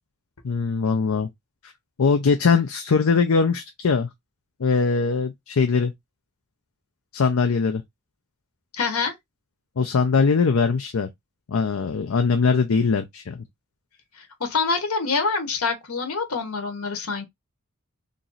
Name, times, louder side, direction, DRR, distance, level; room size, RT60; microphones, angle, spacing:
voice 1, 0.4-1.3 1.6-1.7 2.0-4.1 4.6-5.9 7.1-7.8 9.8-11.1 11.5-13.4, left 5 dB, 70° left, 0.5 m, -21 dB
voice 2, 8.8-9.1 14.2-17.2, left 4 dB, 85° left, 1.0 m, -26 dB
3.0 x 2.6 x 3.9 m
head